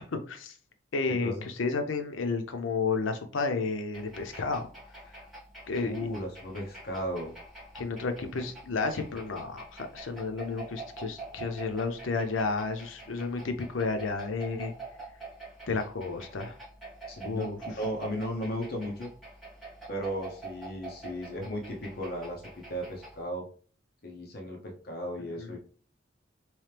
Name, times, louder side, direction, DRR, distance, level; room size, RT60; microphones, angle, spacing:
voice 1, 0.1-0.5 0.9-4.7 5.7-6.0 7.7-14.7 15.7-16.5 17.2-17.6 25.2-25.5, left 4 dB, 90° left, 7 dB, 0.6 m, -32 dB
sound 1, 3.9-23.2, right 3 dB, ahead, 1.7 m, -46 dB
voice 2, 5.6-7.3 17.1-19.1 19.9-22.4 22.7-23.5 24.0-25.6, equal, 50° left, 1 dB, 0.8 m, -35 dB
3.2 x 3.1 x 3.3 m, 0.41 s
head